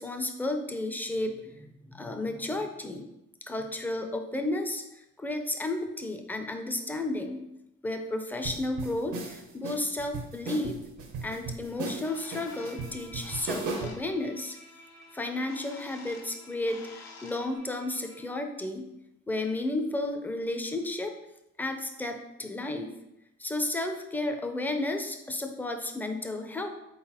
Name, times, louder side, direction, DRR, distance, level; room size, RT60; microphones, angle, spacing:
voice 1, 0.0-3.1 3.5-4.8 5.2-7.4 7.8-10.8 11.2-14.6 15.1-18.9 19.3-21.2 21.6-22.9 23.4-26.7, left 2 dB, 5° left, 5 dB, 0.4 m, -32 dB
sound 1, 8.4-14.0, right 3 dB, 80° right, 0.8 m, -37 dB
Bird, 11.7-17.6, left 5 dB, 60° left, 0.6 m, -51 dB
Bowed string instrument, 12.0-18.4, left 1 dB, 85° left, 1.3 m, -53 dB
3.9 x 3.8 x 2.9 m, 0.86 s
cardioid pair, 90°, 30 cm